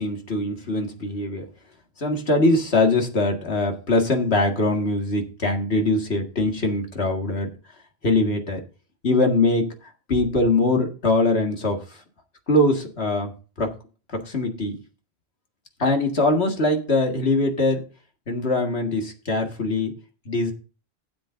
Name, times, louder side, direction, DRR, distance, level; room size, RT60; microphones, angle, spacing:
voice 1, 0.0-1.4 2.0-7.5 8.0-8.6 9.0-9.7 10.1-11.8 12.5-13.3 13.6-13.7 14.1-14.8 15.8-17.8 18.3-19.9 20.3-20.5, left 2 dB, 80° left, 3 dB, 2.2 m, -22 dB
16.5 x 7.5 x 2.6 m, 0.35 s
omnidirectional pair, 1.1 m